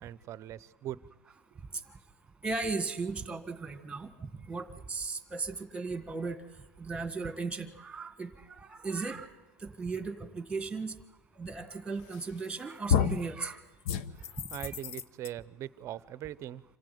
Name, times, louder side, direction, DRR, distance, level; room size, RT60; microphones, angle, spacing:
voice 1, 0.0-1.0 14.1-16.6, right 12 dB, 35° right, 19 dB, 0.7 m, -41 dB
voice 2, 2.4-6.4 6.8-9.3 9.6-10.9 11.3-13.6 14.6-14.7, right 4 dB, 10° right, 11 dB, 1.8 m, -36 dB
sound 1, 12.1-12.5 12.9-13.3 13.8-15.3, left 9 dB, 60° left, 1.0 m, -30 dB
27.0 x 16.5 x 9.4 m, 1.1 s
supercardioid pair, 145°, 9 cm